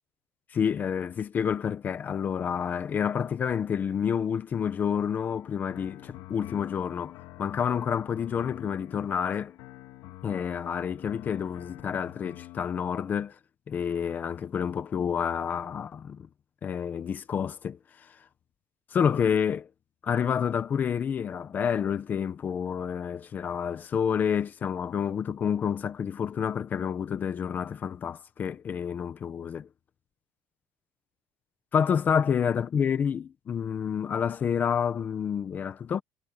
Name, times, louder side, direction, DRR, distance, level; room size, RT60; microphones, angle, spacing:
voice 1, 0.5-9.5 10.2-13.4 13.7-16.3 16.6-18.1 18.9-19.7 20.0-29.7 31.7-36.0, left 7 dB, 25° left, 0.9 m, -29 dB
sound 1, 5.3-12.8, left 16 dB, 60° left, 2.0 m, -46 dB
cardioid pair, 175°, 7 cm